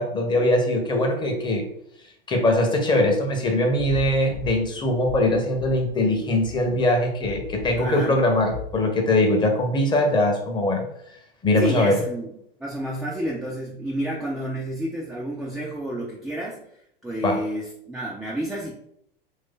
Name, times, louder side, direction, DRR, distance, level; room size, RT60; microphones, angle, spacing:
voice 1, 0.0-1.7 2.3-10.8 11.4-12.0 17.2-17.4, left 1 dB, 15° left, 2 dB, 0.8 m, -21 dB
sound 1, 3.7-8.8, left 7 dB, 85° left, 0.8 m, -38 dB
voice 2, 7.8-8.2 11.6-12.3 12.6-16.6 17.0-18.7, right 1 dB, ahead, -4 dB, 0.4 m, -30 dB
3.0 x 2.7 x 3.6 m, 0.72 s
figure-of-eight pair, 95°, 29 cm